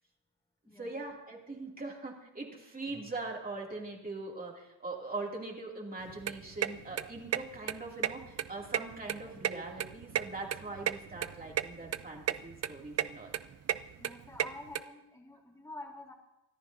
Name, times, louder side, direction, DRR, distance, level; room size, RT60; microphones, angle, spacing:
voice 1, 0.8-13.3, right 3 dB, 20° right, -1 dB, 2.7 m, -41 dB
sound 1, 6.0-14.8, right 10 dB, 40° right, 0.4 m, -34 dB
voice 2, 14.0-16.1, left 2 dB, 10° left, 0 dB, 2.0 m, -47 dB
24.0 x 14.0 x 2.7 m, 0.88 s
wide cardioid pair, 150°, 42 cm